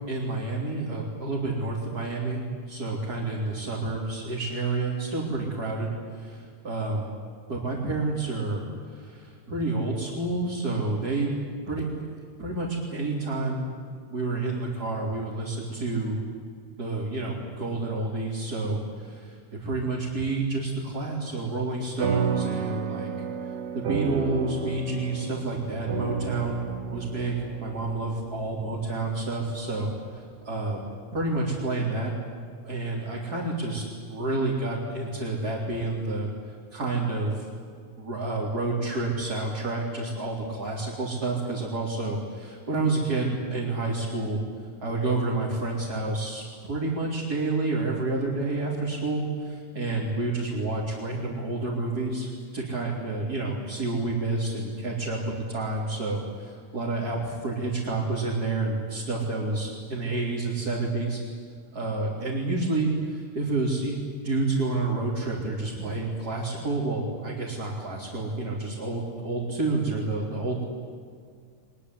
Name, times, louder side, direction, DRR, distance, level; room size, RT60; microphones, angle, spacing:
voice 1, 0.1-7.1 7.5-8.6 8.9-11.4 11.7-11.9 12.4-13.6 14.1-16.2 16.8-23.1 23.7-26.6 26.9-30.8 31.1-32.1 32.6-36.3 36.7-37.4 38.0-44.4 44.8-61.2 61.7-64.0 64.2-70.6, right 2 dB, 30° right, -5 dB, 4.2 m, -29 dB
sound 1, 22.0-30.7, right 6 dB, 50° right, 1.3 m, -33 dB
23.0 x 21.5 x 10.0 m, 2.1 s
omnidirectional pair, 3.6 m